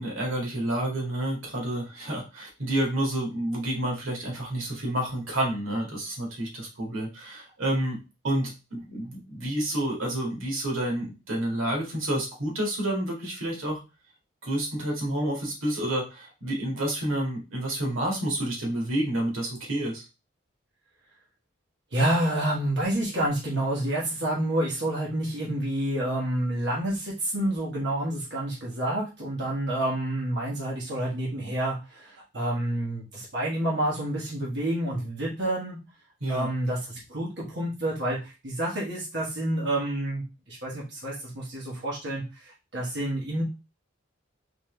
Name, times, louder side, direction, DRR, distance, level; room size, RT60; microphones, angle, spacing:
voice 1, 0.0-8.0 8.2-13.8 14.4-20.0 36.2-36.5, right 1 dB, 85° right, -1 dB, 2.0 m, -29 dB
voice 2, 21.9-35.8 36.3-43.4, right 1 dB, 55° right, -5 dB, 1.5 m, -29 dB
4.2 x 3.3 x 3.2 m, 0.28 s
head